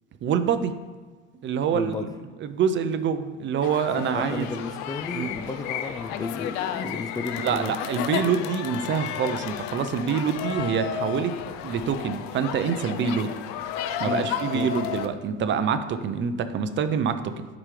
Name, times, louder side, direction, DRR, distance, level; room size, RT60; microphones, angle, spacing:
voice 1, 0.2-0.7 1.4-2.1 2.4-4.5 5.1-5.3 7.4-11.3 11.6-13.3 14.0-17.5, right 7 dB, 40° right, 10 dB, 0.6 m, -26 dB
voice 2, 1.7-2.1 4.1-7.7 14.0-14.7, left 4 dB, 15° left, 6 dB, 0.3 m, -33 dB
sound 1, 3.6-15.1, left 9 dB, 65° left, 0.6 m, -32 dB
11.0 x 5.0 x 3.3 m, 1.4 s
supercardioid pair, 105°, 30 cm